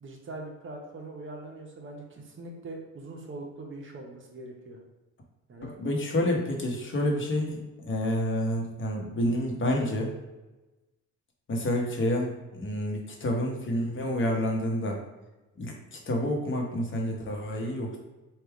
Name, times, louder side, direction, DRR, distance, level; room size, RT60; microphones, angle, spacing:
voice 1, 0.0-4.8 5.5-5.7, right 2 dB, 40° right, 0 dB, 1.0 m, -42 dB
voice 2, 5.6-10.1 11.5-15.0 15.6-18.0, left 1 dB, 40° left, 0 dB, 1.1 m, -29 dB
3.5 x 2.5 x 4.6 m, 1.1 s
cardioid pair, 90°, 30 cm